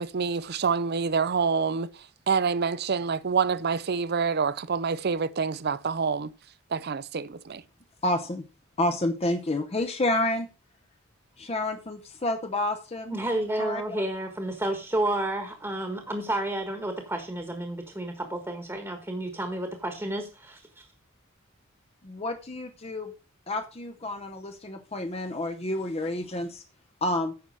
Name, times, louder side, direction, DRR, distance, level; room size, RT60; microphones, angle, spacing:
voice 1, 0.0-6.3 6.7-7.6, right 5 dB, 50° right, 0.5 m, -27 dB
voice 2, 8.0-8.4 8.8-10.5 11.4-13.1 13.6-13.8 22.0-23.1 23.5-26.6 27.0-27.3, left 1 dB, 30° left, 0.8 m, -29 dB
voice 3, 13.1-20.8, right 1 dB, 10° right, 1.3 m, -31 dB
9.5 x 6.1 x 6.2 m
head